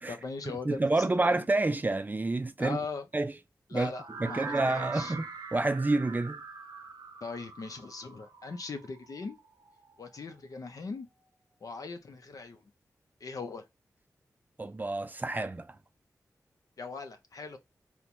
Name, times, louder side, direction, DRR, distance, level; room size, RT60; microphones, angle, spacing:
voice 1, 0.1-1.4 2.6-3.1 3.7-5.2 7.2-9.4 10.0-11.1 11.6-12.6 13.2-13.7 16.8-17.6, left 4 dB, 65° left, 0.6 m, -40 dB
voice 2, 0.7-2.8 3.1-3.3 3.7-3.9 4.2-5.3 5.5-6.4 14.6-15.8, right 2 dB, 25° right, 0.4 m, -28 dB
sound 1, 3.9-9.8, right 4 dB, 80° right, 0.6 m, -42 dB
4.3 x 2.2 x 2.5 m
cardioid pair, 50°, 6 cm